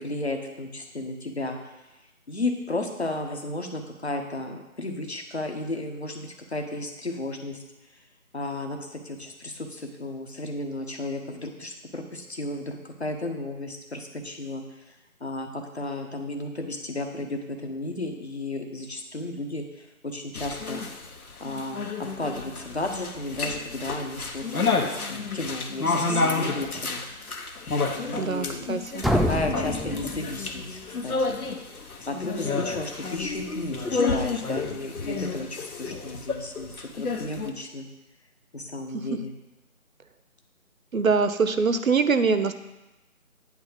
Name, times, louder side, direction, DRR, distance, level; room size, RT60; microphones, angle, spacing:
voice 1, 0.0-1.6 2.3-7.6 8.3-14.6 15.2-20.8 21.4-27.0 27.9-28.7 29.1-31.4 32.1-37.9 38.5-39.3, left 2 dB, 50° left, 4 dB, 1.0 m, -33 dB
sound 1, 20.3-37.5, left 4 dB, 85° left, 1.0 m, -30 dB
voice 2, 28.2-29.1 38.9-39.0 40.9-42.5, right 5 dB, 70° right, 10 dB, 0.7 m, -23 dB
sound 2, 29.0-30.9, equal, ahead, 0.3 m, -27 dB
9.1 x 3.5 x 6.5 m, 1.0 s
figure-of-eight pair, 175°, 43 cm